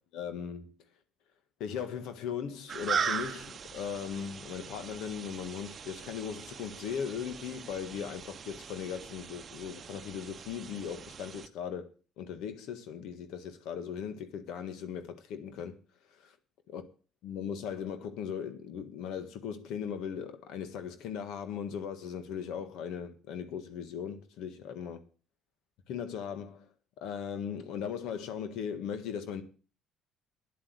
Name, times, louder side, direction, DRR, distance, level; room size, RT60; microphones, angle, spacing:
voice 1, 0.1-0.7 1.6-11.9 12.2-15.8 16.1-16.4 16.7-16.8 17.2-25.0 25.9-26.7 27.0-29.4, left 7 dB, 75° left, 1.5 m, -38 dB
sound 1, 2.7-11.5, right 6 dB, 35° right, 0.8 m, -39 dB
10.0 x 8.0 x 7.9 m
cardioid pair, 120°, 0 cm